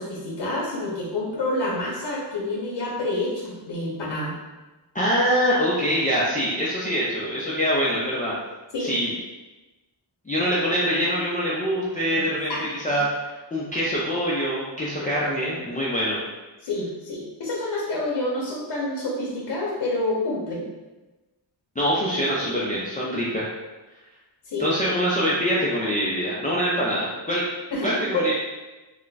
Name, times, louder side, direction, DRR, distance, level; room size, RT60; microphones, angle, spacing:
voice 1, 0.0-4.3 8.7-8.9 12.5-12.6 16.6-20.7 24.4-24.7 27.7-28.3, left 2 dB, 65° left, -5 dB, 0.7 m, -28 dB
voice 2, 4.9-8.4 8.8-9.1 10.3-16.2 21.8-23.5 24.6-27.4 27.8-28.3, equal, 20° left, -8 dB, 0.4 m, -24 dB
2.4 x 2.2 x 3.9 m, 1.1 s
wide cardioid pair, 150°, 46 cm